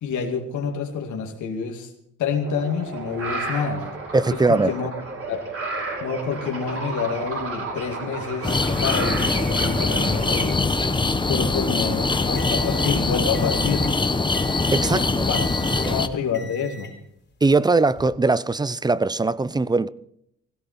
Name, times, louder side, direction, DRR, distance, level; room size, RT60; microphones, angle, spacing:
voice 1, 0.0-1.9 2.2-3.9 4.3-4.9 5.3-5.5 6.0-10.7 11.2-13.9 14.9-15.4 15.8-16.9, left 6 dB, 75° left, 2.3 m, -28 dB
sound 1, 2.4-10.5, right 3 dB, 50° right, 5.9 m, -32 dB
voice 2, 4.1-4.7 14.7-15.3 15.8-15.9 17.4-19.9, right 3 dB, 15° right, 0.5 m, -20 dB
sound 2, 8.4-16.1, left 3 dB, 15° left, 1.2 m, -23 dB
sound 3, 11.9-14.0 14.3-15.0 15.3-16.0 16.3-17.0 17.8-18.0, left 2 dB, 35° left, 3.4 m, -43 dB
17.0 x 16.5 x 4.3 m
cardioid pair, 90°, 30 cm